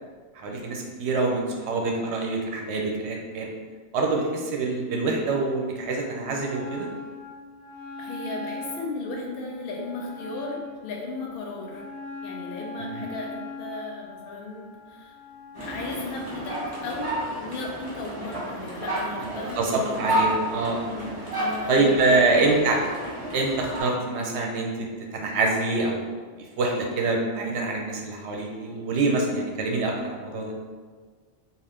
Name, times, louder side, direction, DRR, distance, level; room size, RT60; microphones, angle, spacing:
voice 1, 0.4-3.5 3.9-6.9 12.8-13.1 19.2-21.1 21.7-22.8 23.3-26.1 26.4-30.5, right 3 dB, 70° right, 0 dB, 0.8 m, -25 dB
Wind instrument woodwind instrument, 6.4-16.0, left 3 dB, 80° left, 1.0 m, -40 dB
voice 2, 8.0-11.9 12.2-15.1 15.5-20.5 20.9-22.6, left 2 dB, 55° left, -1 dB, 0.7 m, -36 dB
sound 1, 15.5-23.8, right 1 dB, 30° right, 0.9 m, -31 dB
2.5 x 2.4 x 3.4 m, 1.5 s
omnidirectional pair, 1.3 m